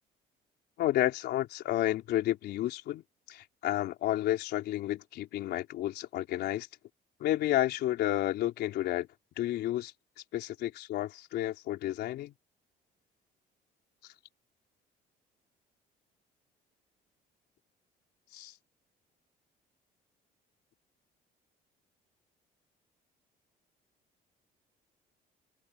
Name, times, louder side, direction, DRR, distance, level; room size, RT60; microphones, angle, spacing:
voice 1, 0.8-3.0 3.3-6.7 7.2-9.1 9.4-9.9 10.3-12.3 18.3-18.5, left 14 dB, 75° left, 4.0 m, -31 dB
open air
cardioid pair, 110°, 17 cm